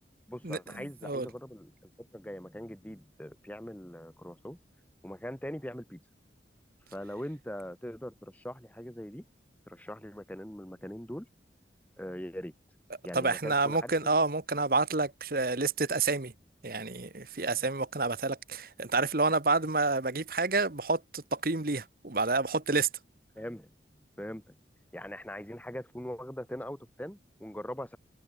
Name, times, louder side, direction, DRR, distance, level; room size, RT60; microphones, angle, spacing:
voice 1, 0.3-4.6 5.0-6.0 6.9-9.2 9.7-11.3 12.0-12.5 13.0-13.9 23.3-23.7 24.0-24.6 24.9-28.0, equal, 10° left, 1.4 m, -41 dB
voice 2, 13.1-16.3 16.6-22.9, right 3 dB, 50° right, 1.3 m, -29 dB
head